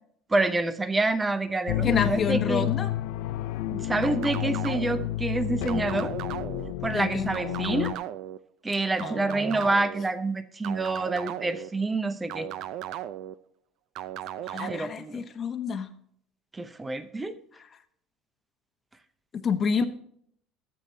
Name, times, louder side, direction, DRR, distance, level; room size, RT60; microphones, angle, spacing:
voice 1, 0.3-2.7 3.7-6.1 6.8-7.9 8.6-12.5 14.7-15.2 16.5-17.4, right 2 dB, 10° right, 12 dB, 0.8 m, -27 dB
sound 1, 1.7-7.9, left 14 dB, 75° left, 0.6 m, -30 dB
voice 2, 1.8-2.9 6.9-7.3 9.0-9.7 14.4-15.9 19.3-19.9, left 6 dB, 30° left, 7 dB, 1.1 m, -29 dB
sound 2, 4.0-5.1 5.7-6.7 7.3-8.4 9.0-10.0 10.6-11.7 12.3-13.3 14.0-14.8, right 12 dB, 60° right, 0.5 m, -36 dB
14.5 x 8.4 x 2.8 m, 0.66 s
cardioid pair, 140°, 0 cm